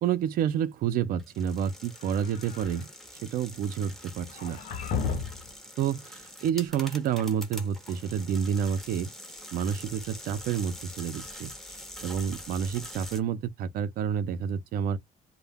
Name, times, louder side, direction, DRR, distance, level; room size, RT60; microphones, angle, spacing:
voice 1, 0.0-2.9 3.1-4.6 5.8-9.1 9.5-15.0, right 8 dB, 65° right, 0.4 m, -29 dB
sound 1, 1.2-13.2, equal, ahead, 0.5 m, -44 dB
sound 2, 1.9-2.8 4.3-5.5, left 6 dB, 60° left, 0.7 m, -34 dB
2.1 x 2.1 x 3.3 m
cardioid pair, 155°, 16 cm